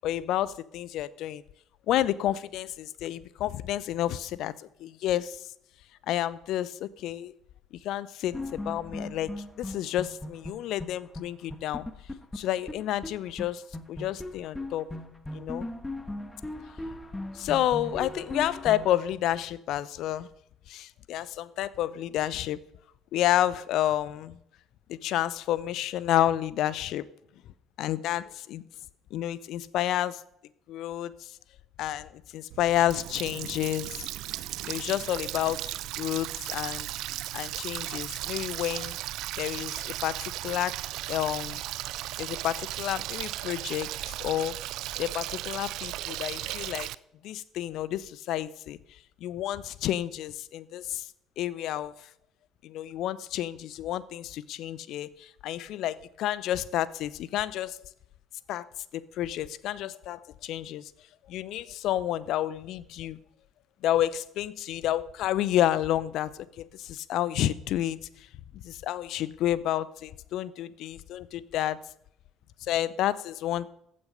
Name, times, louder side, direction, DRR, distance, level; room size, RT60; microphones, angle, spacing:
voice 1, 0.0-1.4 1.9-5.4 6.1-7.3 7.8-9.3 9.6-11.9 12.3-13.6 13.9-14.9 15.3-15.7 17.3-20.3 20.7-22.6 23.1-24.4 24.9-27.1 27.8-28.6 29.1-30.2 30.7-31.3 31.8-35.7 36.0-36.9 37.3-39.0 39.4-40.8 41.1-41.6 42.2-43.9 44.2-44.6 45.0-46.9 47.2-48.8 49.2-51.1 51.4-51.9 52.6-57.8 58.5-60.9 61.3-63.2 63.8-68.0 68.5-71.8 72.6-73.7, left 12 dB, 55° left, 19 dB, 0.6 m, -30 dB
sound 1, 8.3-10.9 11.1-11.2 11.5-13.1 13.4-13.5 13.7-19.0, left 2 dB, 10° left, 1.6 m, -38 dB
Water tap faucet, 32.5-47.0, right 15 dB, 60° right, 0.4 m, -36 dB
15.0 x 8.7 x 5.3 m, 0.74 s
figure-of-eight pair, 55°, 0 cm